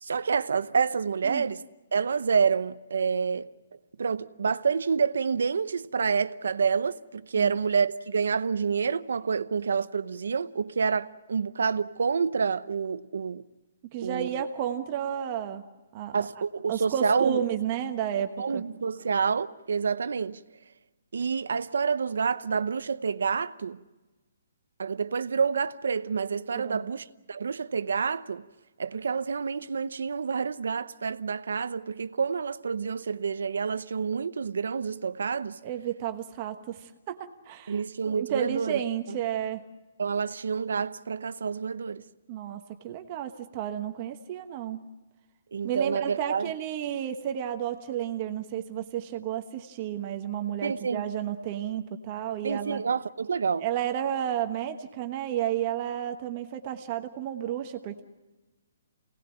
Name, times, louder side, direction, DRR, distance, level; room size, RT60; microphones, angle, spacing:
voice 1, 0.0-1.6 1.9-3.5 4.0-13.4 14.0-14.3 16.1-17.4 18.4-20.4 21.1-23.8 24.8-28.4 28.8-35.6 37.7-38.8 40.0-42.0 45.5-46.5 50.6-51.0 52.4-53.6, right 5 dB, 80° right, 0.8 m, -28 dB
voice 2, 13.8-15.6 15.9-16.3 16.7-18.6 26.5-26.9 35.6-39.6 42.3-44.8 45.6-52.8 53.6-58.0, right 10 dB, 30° right, 1.2 m, -32 dB
25.0 x 18.5 x 8.8 m
hypercardioid pair, 165°, 0 cm